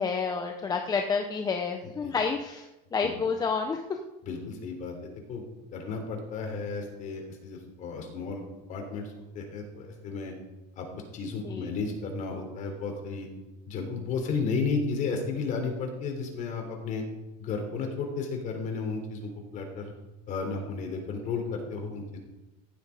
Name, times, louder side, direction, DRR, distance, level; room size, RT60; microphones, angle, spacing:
voice 1, 0.0-4.0 11.4-11.7, left 5 dB, 20° left, 4 dB, 0.8 m, -29 dB
voice 2, 4.3-5.4 5.7-8.4 8.7-9.1 9.3-10.3 10.8-10.9 11.1-13.3 13.7-17.0 17.4-19.9 20.3-22.2, left 4 dB, 40° left, 3 dB, 3.6 m, -33 dB
15.5 x 9.9 x 5.0 m, 1.0 s
cardioid pair, 145°, 20 cm